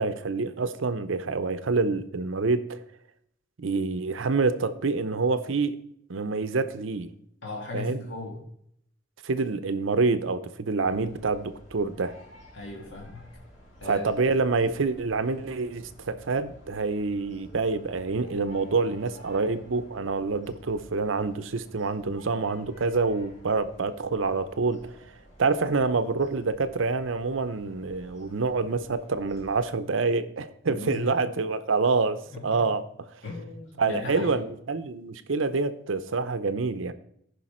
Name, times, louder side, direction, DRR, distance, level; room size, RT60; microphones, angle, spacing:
voice 1, 0.0-2.8 3.6-5.8 6.1-7.1 7.7-8.0 9.2-12.2 13.8-24.8 25.4-32.8 33.8-36.9, right 4 dB, 85° right, 13 dB, 0.6 m, -27 dB
voice 2, 7.4-8.4 12.5-13.2 13.8-14.1 30.7-31.1 32.3-32.7 33.2-34.4, left 3 dB, 70° left, 0 dB, 1.7 m, -37 dB
sound 1, 10.8-29.7, equal, 35° left, 3.0 m, -52 dB
14.5 x 5.5 x 4.3 m, 0.71 s
head